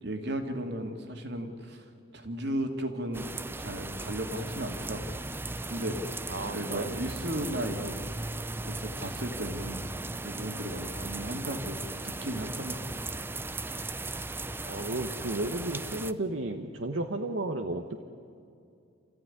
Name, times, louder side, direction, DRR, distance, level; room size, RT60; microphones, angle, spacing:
voice 1, 0.0-1.8 2.1-3.3 3.6-5.2 5.7-6.2 6.5-8.1 8.7-9.8 10.2-12.8 13.0-13.2, right 1 dB, 60° right, 5 dB, 2.5 m, -35 dB
sound 1, 3.1-16.1, right 2 dB, 10° right, 0.6 m, -37 dB
voice 2, 6.3-7.1 14.7-18.0, right 2 dB, 75° right, 4 dB, 1.2 m, -33 dB
28.5 x 15.0 x 10.0 m, 2.5 s
head